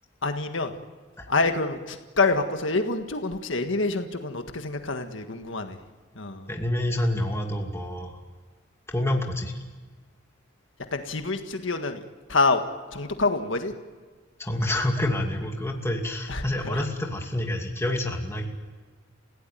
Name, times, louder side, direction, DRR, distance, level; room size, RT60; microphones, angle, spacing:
voice 1, 0.2-0.7 1.3-5.8 6.1-6.5 10.9-12.0 12.3-12.6 12.9-13.7 16.3-16.8, left 3 dB, 80° left, 6 dB, 1.7 m, -26 dB
voice 2, 6.5-8.2 8.9-9.5 14.4-18.5, left 1 dB, 15° left, 1 dB, 2.6 m, -27 dB
30.0 x 16.5 x 9.2 m, 1.4 s
head